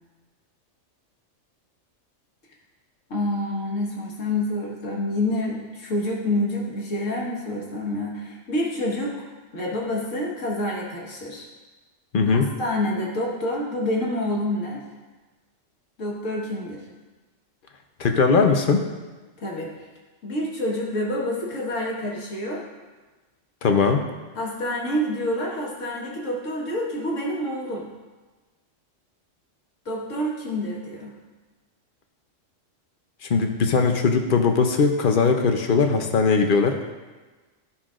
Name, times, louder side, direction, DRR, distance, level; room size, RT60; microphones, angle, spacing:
voice 1, 3.1-9.1 9.5-11.5 12.3-14.8 16.0-16.8 19.4-19.7 20.2-22.6 24.4-27.9 29.9-31.1, left 1 dB, 80° left, -3 dB, 1.8 m, -27 dB
voice 2, 12.1-12.5 18.0-18.8 23.6-24.0 33.3-36.8, left 4 dB, 50° left, 5 dB, 0.7 m, -20 dB
13.0 x 5.5 x 2.5 m, 1.3 s
omnidirectional pair, 1.3 m